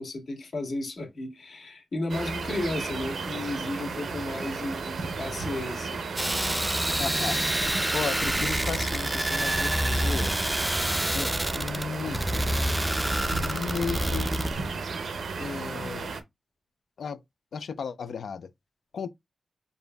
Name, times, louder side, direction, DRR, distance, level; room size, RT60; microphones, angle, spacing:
voice 1, 0.0-6.0, left 2 dB, 65° left, 1.6 m, -33 dB
sound 1, 2.1-16.2, right 4 dB, 90° right, 0.6 m, -34 dB
sound 2, 6.2-14.5, right 1 dB, 10° right, 0.4 m, -27 dB
voice 2, 7.0-10.4 11.1-12.5 13.4-14.3 15.4-16.1 17.0-17.2 17.5-18.5 18.9-19.1, left 6 dB, 85° left, 0.4 m, -35 dB
6.9 x 2.6 x 2.2 m
wide cardioid pair, 140°, 0 cm